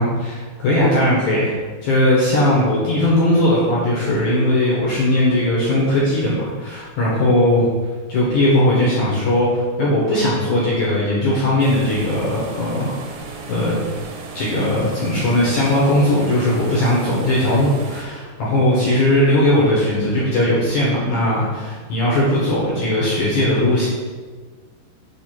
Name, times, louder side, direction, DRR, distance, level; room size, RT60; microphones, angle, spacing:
voice 1, 0.0-1.5 1.8-7.7 8.1-13.0 13.5-13.8 14.4-23.9, left 1 dB, 70° left, -6 dB, 1.8 m, -18 dB
sound 1, 11.6-18.0, right 4 dB, 80° right, 2.9 m, -35 dB
6.9 x 3.6 x 5.8 m, 1.4 s
omnidirectional pair, 5.1 m